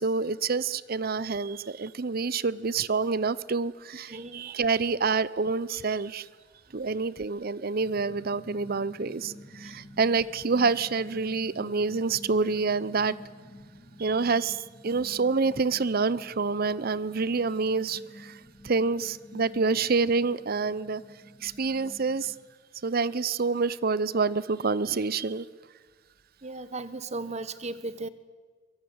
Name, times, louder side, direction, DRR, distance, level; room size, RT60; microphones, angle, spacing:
voice 1, 0.0-6.3 6.7-13.2 14.0-18.4 18.6-21.0 21.4-22.3 22.8-25.5, right 4 dB, 55° right, 0.7 m, -27 dB
voice 2, 4.1-4.6 6.7-6.8 9.6-9.7 26.4-28.1, right 2 dB, 40° right, 1.3 m, -36 dB
sound 1, 7.8-22.3, left 1 dB, 25° left, 4.1 m, -49 dB
23.5 x 22.5 x 9.6 m
head